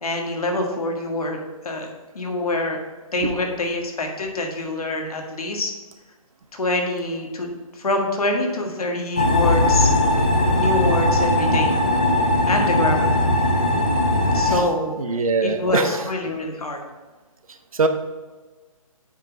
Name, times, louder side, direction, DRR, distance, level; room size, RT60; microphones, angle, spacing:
voice 1, 0.0-2.8 3.1-5.7 6.5-9.9 10.5-11.7 12.4-13.2 14.3-15.0 15.4-16.8, left 2 dB, 80° left, 2 dB, 1.8 m, -25 dB
sound 1, 9.2-14.6, left 1 dB, 15° left, 0.3 m, -19 dB
voice 2, 15.0-16.1 17.7-17.9, right 4 dB, 70° right, 8 dB, 0.9 m, -22 dB
8.1 x 3.2 x 6.1 m, 1.3 s
hypercardioid pair, 170°, 19 cm